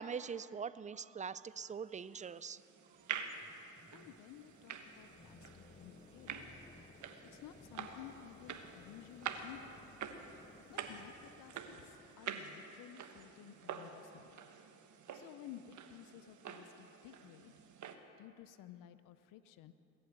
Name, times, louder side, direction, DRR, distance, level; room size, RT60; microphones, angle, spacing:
voice 1, 0.0-2.6, right 6 dB, 25° right, 16 dB, 0.5 m, -43 dB
sound 1, 1.9-18.0, right 7 dB, 65° right, 1.2 m, -48 dB
sound 2, 2.9-12.2, left 4 dB, 20° left, 0.8 m, -61 dB
voice 2, 3.9-6.5 7.3-9.9 10.7-14.3 15.1-17.5 18.2-19.7, left 11 dB, 85° left, 13 dB, 0.7 m, -55 dB
20.5 x 7.7 x 9.2 m, 2.7 s
cardioid pair, 75°, 32 cm